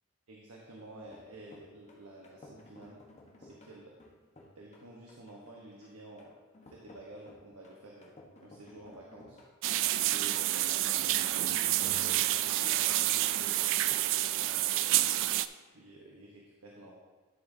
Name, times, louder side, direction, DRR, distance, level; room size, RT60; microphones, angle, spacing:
voice 1, 0.3-3.0 3.4-3.9 4.5-6.3 6.7-9.4 10.0-15.0 15.6-16.9, right 1 dB, 85° right, -2 dB, 1.1 m, -51 dB
sound 1, 1.0-14.0, left 1 dB, 30° left, 1.0 m, -56 dB
sound 2, 9.6-15.5, right 14 dB, 60° right, 0.3 m, -28 dB
11.0 x 7.2 x 2.7 m, 1.3 s
head